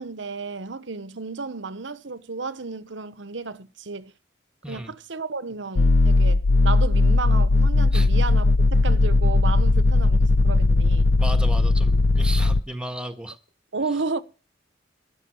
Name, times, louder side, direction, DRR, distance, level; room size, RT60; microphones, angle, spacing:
voice 1, 0.0-4.1 4.7-11.1 13.7-14.2, right 4 dB, 75° right, 1.1 m, -32 dB
sound 1, 5.8-12.6, left 2 dB, 75° left, 0.6 m, -18 dB
voice 2, 11.2-13.4, right 1 dB, 5° right, 1.5 m, -34 dB
12.5 x 10.5 x 6.6 m
head